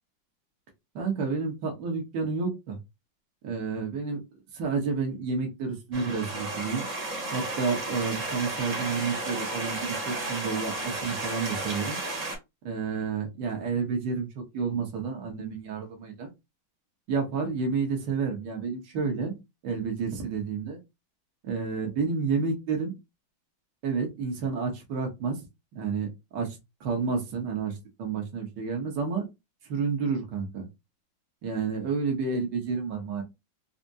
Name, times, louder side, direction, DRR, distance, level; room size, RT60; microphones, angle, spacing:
voice 1, 0.9-2.8 3.4-4.2 4.5-6.8 7.3-12.0 12.6-16.3 17.1-20.8 21.4-22.9 23.8-25.4 25.7-29.3 29.7-30.7 31.4-33.2, right 5 dB, 60° right, 2 dB, 1.7 m, -30 dB
sound 1, 5.9-12.4, right 2 dB, 40° right, 1.6 m, -33 dB
4.9 x 2.1 x 2.6 m, 0.22 s
omnidirectional pair, 2.2 m